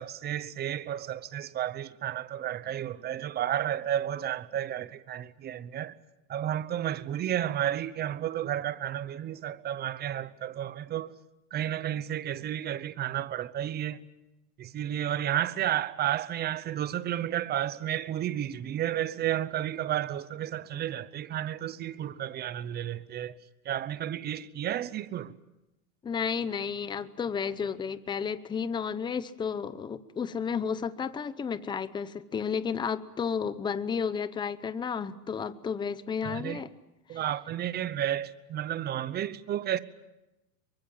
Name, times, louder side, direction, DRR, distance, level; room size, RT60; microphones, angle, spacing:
voice 1, 0.0-5.9 6.3-11.1 11.5-14.0 14.6-23.4 23.6-25.3 36.2-36.6 37.1-39.8, right 11 dB, 20° right, 0.9 m, -32 dB
voice 2, 26.0-36.7 37.1-37.2, left 6 dB, 10° left, 0.8 m, -32 dB
27.0 x 24.0 x 7.4 m
supercardioid pair, 145°, 46 cm